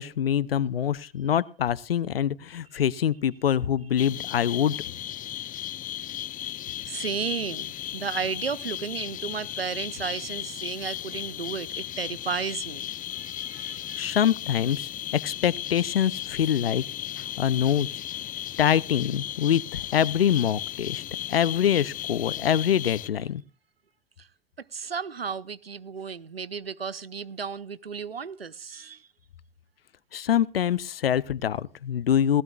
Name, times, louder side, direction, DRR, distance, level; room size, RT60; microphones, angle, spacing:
voice 1, 0.0-4.8 13.6-13.7 14.0-16.8 17.2-17.9 18.6-21.0 21.3-23.4 30.1-32.4, left 9 dB, 80° left, 0.7 m, -25 dB
sound 1, 4.0-23.1, left 12 dB, 30° left, 0.6 m, -36 dB
voice 2, 6.9-14.1 24.2-24.3 24.7-29.0, right 6 dB, 90° right, 0.7 m, -34 dB
19.0 x 17.0 x 2.3 m
figure-of-eight pair, 75°, 29 cm